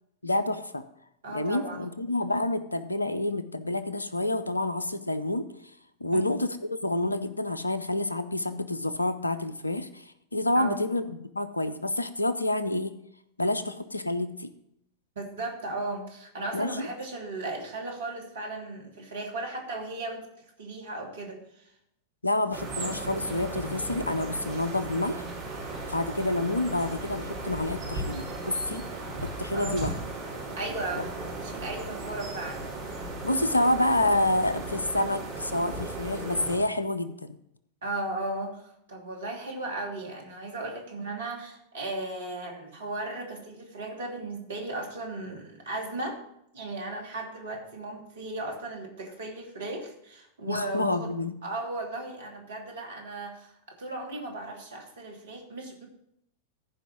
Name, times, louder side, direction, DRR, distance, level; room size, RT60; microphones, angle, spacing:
voice 1, 0.2-0.8 1.3-5.5 6.0-12.9 13.4-14.5 16.5-16.9 22.2-25.2 25.9-28.8 29.2-30.0 33.2-37.4 50.5-51.3, left 1 dB, 80° left, 13 dB, 0.6 m, -28 dB
voice 2, 1.2-1.8 6.1-6.3 10.5-10.8 15.2-20.3 20.6-21.7 29.5-29.9 30.6-31.1 31.4-32.7 37.8-46.2 46.5-51.1 51.4-55.9, right 2 dB, 60° right, 2 dB, 2.5 m, -36 dB
sound 1, 22.5-36.6, right 2 dB, 45° right, 3.7 m, -36 dB
14.5 x 5.1 x 6.0 m, 0.77 s
figure-of-eight pair, 90°, 0 cm